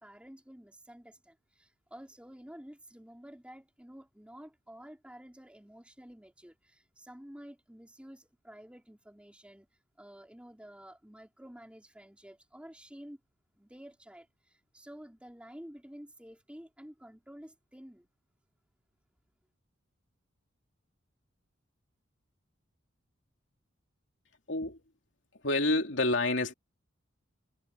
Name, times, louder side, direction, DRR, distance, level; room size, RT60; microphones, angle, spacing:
voice 1, 0.0-9.7 10.0-13.2 13.6-18.1, equal, 5° right, 3.2 m, -51 dB
voice 2, 24.5-24.8 25.4-26.5, left 2 dB, 65° left, 3.2 m, -28 dB
head